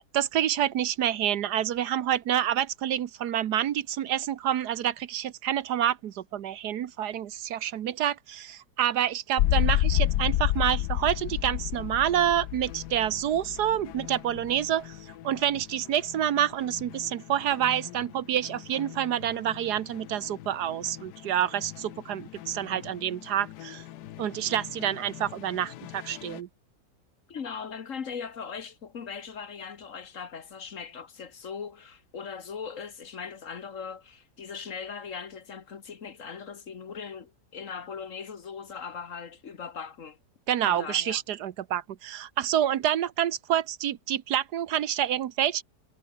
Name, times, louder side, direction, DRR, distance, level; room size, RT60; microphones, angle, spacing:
voice 1, 0.0-15.0 15.2-23.8 24.2-26.5 40.5-45.6, right 10 dB, 80° right, 1.5 m, -28 dB
sound 1, 9.4-26.4, left 14 dB, 80° left, 1.3 m, -33 dB
voice 2, 27.3-40.2 40.6-41.2, left 6 dB, 50° left, 1.6 m, -39 dB
omnidirectional pair, 1.7 m